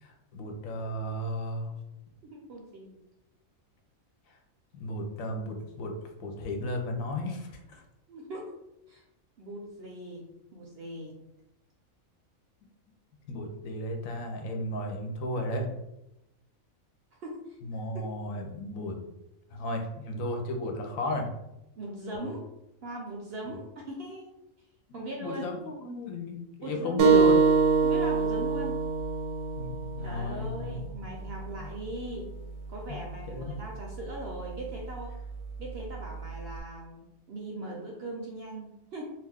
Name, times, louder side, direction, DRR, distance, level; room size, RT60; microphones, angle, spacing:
voice 1, 0.0-1.7 4.7-7.8 13.3-15.7 17.6-19.0 19.5-21.3 22.1-22.3 23.5-23.6 24.9-27.5 29.6-30.8 31.6-31.8 32.9-33.6, left 1 dB, 80° left, 3 dB, 1.0 m, -34 dB
voice 2, 2.2-3.0 8.1-8.5 8.9-9.0 9.4-10.2 10.5-11.1 17.2-17.5 17.9-18.1 21.8-22.4 22.8-24.3 24.9-25.4 26.6-27.0 27.8-28.8 30.0-32.3 32.7-35.1 35.6-39.0, right 1 dB, 65° right, -1 dB, 0.6 m, -40 dB
sound 1, 27.0-32.1, right 5 dB, 85° right, 1.0 m, -25 dB
2.5 x 2.3 x 3.4 m, 0.88 s
omnidirectional pair, 1.4 m